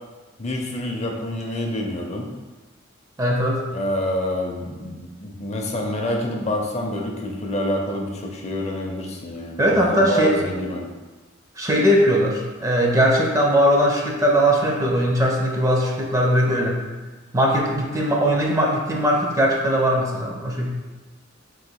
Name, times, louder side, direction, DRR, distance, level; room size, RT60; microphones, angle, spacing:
voice 1, 0.4-2.3 3.7-10.9, left 1 dB, 35° left, 1 dB, 0.5 m, -27 dB
voice 2, 3.2-3.6 9.6-10.4 11.6-16.8 17.3-20.7, equal, 15° right, 0 dB, 0.4 m, -20 dB
3.8 x 2.6 x 4.5 m, 1.2 s
head